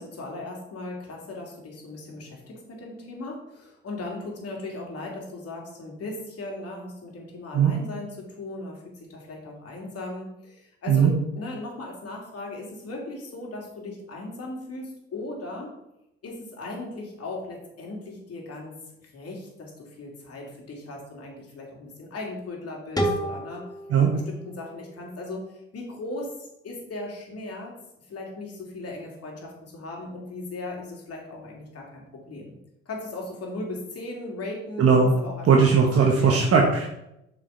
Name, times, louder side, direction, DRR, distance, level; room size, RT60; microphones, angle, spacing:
voice 1, 0.0-15.7 16.2-23.6 24.0-26.3 26.6-27.7 28.1-32.6 32.9-36.5, left 2 dB, 50° left, -1 dB, 2.7 m, -37 dB
sound 1, 23.0-25.8, right 1 dB, 10° left, 1.7 m, -32 dB
voice 2, 34.8-35.1 35.4-36.9, right 5 dB, 50° right, 1 dB, 1.3 m, -18 dB
7.1 x 5.1 x 3.9 m, 0.84 s
hypercardioid pair, 55°, 31 cm